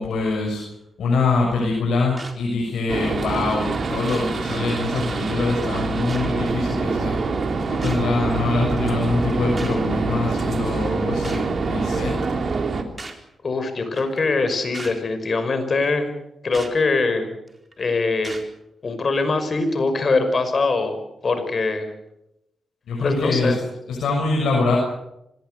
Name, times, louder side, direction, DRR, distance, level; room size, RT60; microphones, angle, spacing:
voice 1, 0.0-7.2 7.7-12.1 22.9-23.6 23.9-24.8, left 3 dB, 85° left, -1 dB, 6.8 m, -24 dB
sound 1, 2.2-2.4 3.3-3.4 4.1-4.3 5.3-5.4 6.1-6.3 7.8-8.1 9.6-9.8 11.2-11.5 13.0-13.2 13.9-14.2 14.7-15.0 16.5-16.7 17.5-17.7 18.2-18.5 19.2-19.3, right 3 dB, 30° right, 4.3 m, -37 dB
sound 2, 2.9-12.8, right 4 dB, 55° right, 3.2 m, -25 dB
voice 2, 13.4-16.1 16.4-17.4 17.8-18.4 18.8-21.0 21.2-21.9 23.0-23.6, left 3 dB, 45° left, 9 dB, 5.7 m, -22 dB
25.5 x 20.5 x 6.8 m, 0.86 s
cardioid pair, 75°, 0 cm